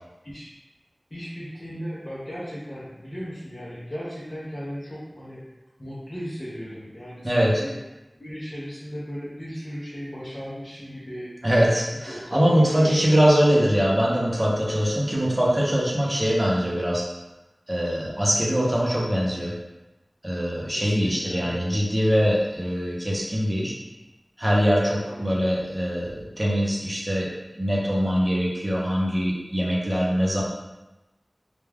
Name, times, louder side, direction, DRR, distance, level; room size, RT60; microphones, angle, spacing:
voice 1, 1.1-5.4 5.8-7.8 8.1-11.4 12.1-13.5 20.7-21.6 25.1-25.6, equal, 35° left, -9 dB, 0.6 m, -36 dB
voice 2, 11.4-17.0 17.7-19.5 20.2-23.7 24.4-27.3 27.5-30.4, equal, 25° right, -4 dB, 0.7 m, -22 dB
2.3 x 2.2 x 3.3 m, 1.0 s
wide cardioid pair, 50°, 0 cm